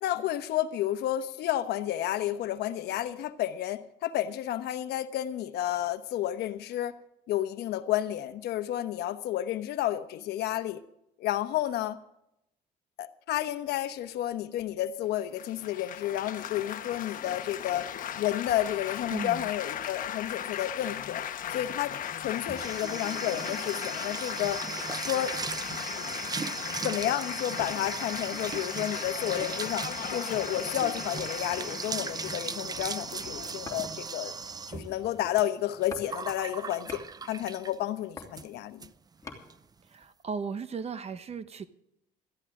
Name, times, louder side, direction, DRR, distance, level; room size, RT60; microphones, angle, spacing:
voice 1, 0.0-7.0 7.3-10.8 11.2-12.0 13.0-17.9 18.2-21.2 21.5-24.6 25.1-25.6 26.8-34.3 34.7-38.9, left 12 dB, 75° left, 1.1 m, -31 dB
Laughter / Applause / Chatter, 15.4-34.5, left 10 dB, 55° left, 1.1 m, -38 dB
voice 2, 19.1-19.5 39.9-41.7, right 5 dB, 40° right, 0.9 m, -36 dB
sound 1, 22.1-37.8 38.2-38.5 38.8-38.9 39.2-39.6, right 5 dB, 25° right, 0.5 m, -38 dB
sound 2, 31.2-31.6 32.2-32.9 33.7-34.2 34.6-35.3 35.9-36.1 36.4-37.1 37.9-39.4 40.0-40.1, left 4 dB, 20° left, 3.1 m, -46 dB
17.0 x 14.0 x 3.7 m
cardioid pair, 110°, 17 cm